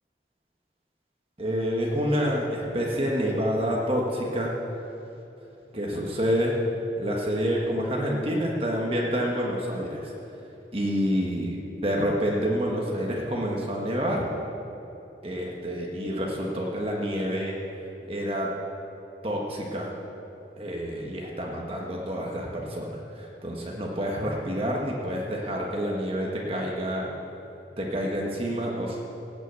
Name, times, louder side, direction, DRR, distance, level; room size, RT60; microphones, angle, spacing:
voice 1, 1.4-4.5 5.7-6.6 7.0-10.1 10.7-11.6 11.8-14.2 15.2-17.6 18.0-18.5 19.2-19.9 20.6-22.9 23.1-27.1 27.8-29.0, equal, 30° right, -2 dB, 1.4 m, -28 dB
17.5 x 6.1 x 8.2 m, 3.0 s
head